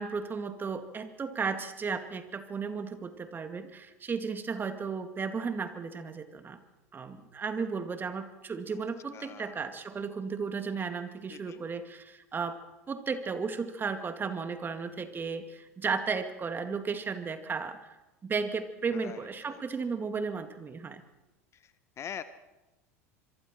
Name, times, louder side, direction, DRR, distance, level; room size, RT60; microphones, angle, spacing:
voice 1, 0.0-6.6 6.9-12.6 12.9-18.0 18.2-21.0, right 5 dB, 25° right, 8 dB, 2.2 m, -34 dB
voice 2, 9.1-9.6 11.3-11.6 18.9-19.6 21.5-22.2, left 9 dB, 35° left, 13 dB, 1.2 m, -44 dB
25.5 x 23.5 x 4.5 m, 1.0 s
hypercardioid pair, 80°, 8 cm